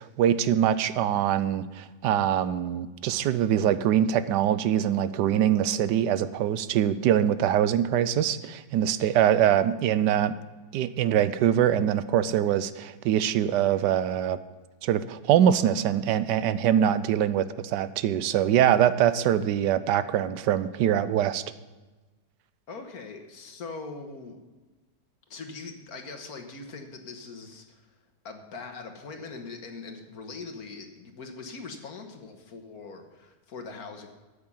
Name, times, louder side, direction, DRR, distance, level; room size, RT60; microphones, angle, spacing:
voice 1, 0.0-10.3 10.7-14.4 14.8-21.4, right 10 dB, 85° right, 14 dB, 1.2 m, -23 dB
voice 2, 22.7-24.4 25.3-27.9 28.2-34.1, left 4 dB, 60° left, 5 dB, 1.8 m, -41 dB
13.5 x 8.6 x 5.5 m, 1.2 s
omnidirectional pair, 1.8 m